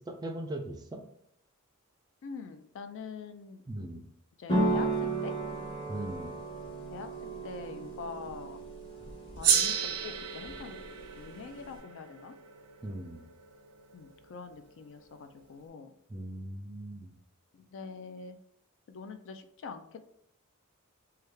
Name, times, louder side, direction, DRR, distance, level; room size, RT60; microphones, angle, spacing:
voice 1, 0.1-1.0 3.7-4.0 5.9-6.3 12.8-13.2 16.1-17.1, right 1 dB, 20° right, 4 dB, 0.3 m, -39 dB
voice 2, 2.2-3.6 4.4-5.3 6.9-8.6 9.4-10.8 11.1-12.3 13.9-15.9 17.5-18.4 18.9-20.0, left 5 dB, 60° left, 8 dB, 0.4 m, -44 dB
sound 1, 4.5-11.8, right 2 dB, 25° left, 0.8 m, -35 dB
Gong, 9.4-14.2, right 8 dB, 90° right, 0.5 m, -32 dB
3.2 x 2.3 x 3.1 m, 0.71 s
head